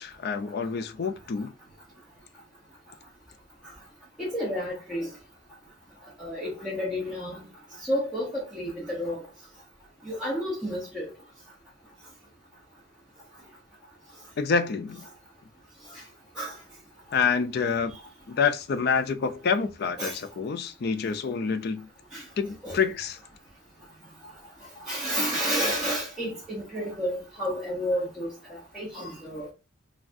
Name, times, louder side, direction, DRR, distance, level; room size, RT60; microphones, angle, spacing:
voice 1, 0.0-1.5 14.4-15.0 17.1-18.0 18.3-21.9 22.4-23.2, left 5 dB, 50° left, 0.3 m, -27 dB
voice 2, 4.2-5.1 6.2-7.5 7.8-9.2 10.1-11.1 16.4-16.5 20.0-20.2 22.1-22.2 22.6-22.8 24.9-29.5, equal, 5° right, 0.8 m, -30 dB
3.3 x 2.3 x 2.5 m
head